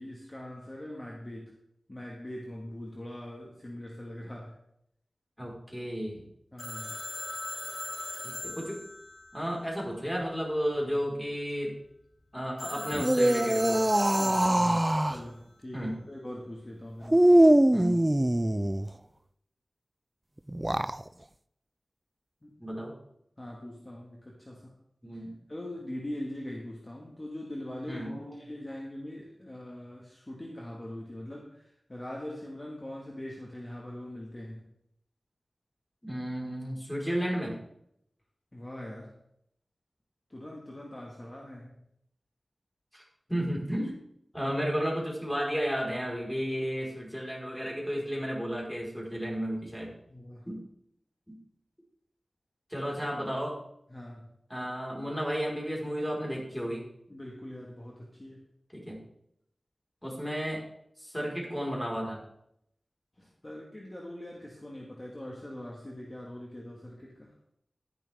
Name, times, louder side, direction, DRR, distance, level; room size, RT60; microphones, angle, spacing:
voice 1, 0.0-1.5 1.9-4.6 6.5-7.0 14.2-17.3 22.4-22.8 23.4-24.8 25.1-25.2 25.5-34.7 38.5-39.2 40.3-41.8 44.4-44.6 50.1-50.5 53.9-54.3 57.1-58.5 63.2-67.3, left 1 dB, 30° left, -2 dB, 2.0 m, -42 dB
voice 2, 5.4-6.2 8.2-8.8 9.3-11.7 12.3-13.8 15.7-16.0 17.7-18.0 22.6-22.9 25.0-25.3 27.9-28.4 36.0-37.5 42.9-43.0 43.3-44.0 44.3-49.9 50.5-50.6 51.3-51.4 52.7-53.6 54.5-56.8 58.7-59.0 60.0-60.6 61.0-62.2, equal, 5° left, -3 dB, 5.0 m, -33 dB
Telephone, 6.6-10.2 12.6-15.1, left 2 dB, 70° left, 3.7 m, -40 dB
sound 1, 12.9-15.2 17.1-18.9 20.5-21.0, right 1 dB, 15° right, 0.4 m, -22 dB
13.0 x 11.0 x 3.7 m, 0.74 s
wide cardioid pair, 70°, 0 cm